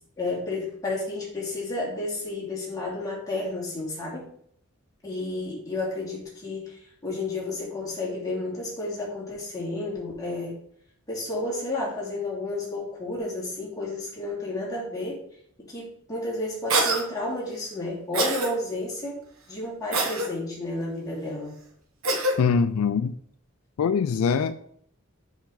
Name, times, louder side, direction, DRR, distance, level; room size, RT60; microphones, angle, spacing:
voice 1, 0.2-4.3 5.0-10.6 11.1-15.2 15.7-21.5, left 2 dB, 15° left, 2.7 m, -31 dB
Cough, 16.7-17.0 18.1-18.5 19.9-20.3 22.0-22.4, right 2 dB, 75° right, 1.3 m, -24 dB
voice 2, 22.4-23.1 23.8-24.7, left 6 dB, 80° left, 0.4 m, -23 dB
7.1 x 5.7 x 3.9 m
head